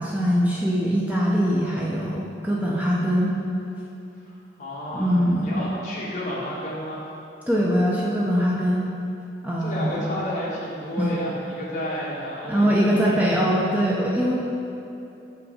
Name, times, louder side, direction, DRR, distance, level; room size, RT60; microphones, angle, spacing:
voice 1, 0.0-3.3 4.9-5.6 7.5-8.9 9.4-10.1 11.0-11.1 12.5-14.3, equal, 10° right, -5 dB, 0.6 m, -22 dB
voice 2, 4.2-7.0 9.6-13.5, equal, 45° left, -7 dB, 1.6 m, -31 dB
6.7 x 5.4 x 4.3 m, 2.8 s
head